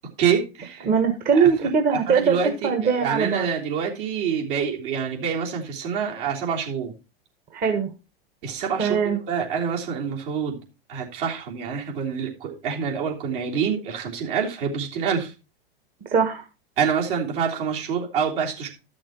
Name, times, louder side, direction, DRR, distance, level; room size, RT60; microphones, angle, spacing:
voice 1, 0.2-0.9 1.3-7.0 8.4-10.6 10.9-15.3 16.8-18.7, right 7 dB, 60° right, -1 dB, 3.4 m, -27 dB
voice 2, 0.8-2.4 2.6-3.5 7.5-7.9 8.8-9.2 16.1-16.4, right 6 dB, 30° right, 4 dB, 1.6 m, -21 dB
12.5 x 6.4 x 4.5 m, 0.30 s
hypercardioid pair, 100°, 30 cm